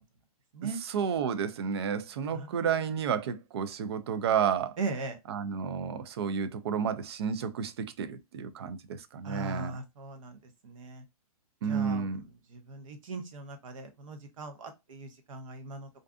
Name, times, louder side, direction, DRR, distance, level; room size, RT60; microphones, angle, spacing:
voice 1, 0.8-4.8 5.3-9.8 11.6-12.2, right 7 dB, 45° right, 0.4 m, -31 dB
voice 2, 2.3-2.9 4.8-5.2 9.2-11.0 11.7-15.9, right 3 dB, 60° right, 0.8 m, -39 dB
2.5 x 2.3 x 2.3 m
hypercardioid pair, 170°, 19 cm